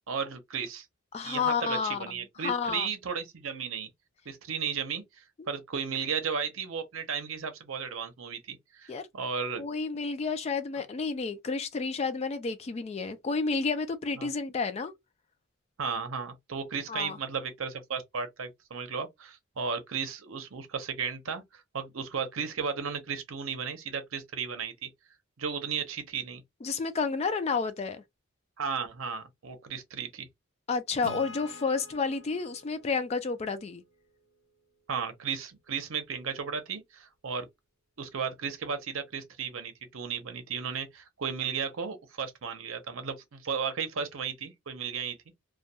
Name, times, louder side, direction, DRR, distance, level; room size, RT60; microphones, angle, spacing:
voice 1, 0.1-0.9 1.2-3.9 4.3-9.7 14.2-14.3 15.8-24.9 25.4-26.4 28.6-30.3 34.9-37.5 38.0-45.2, right 6 dB, 70° right, 0.6 m, -34 dB
voice 2, 1.1-2.0 2.4-2.9 5.4-5.5 8.9-9.1 9.6-14.9 16.9-17.2 26.6-28.0 30.7-33.8, left 4 dB, 30° left, 0.3 m, -30 dB
Acoustic guitar / Strum, 31.0-34.5, left 2 dB, 80° left, 1.0 m, -47 dB
2.3 x 2.2 x 2.7 m
head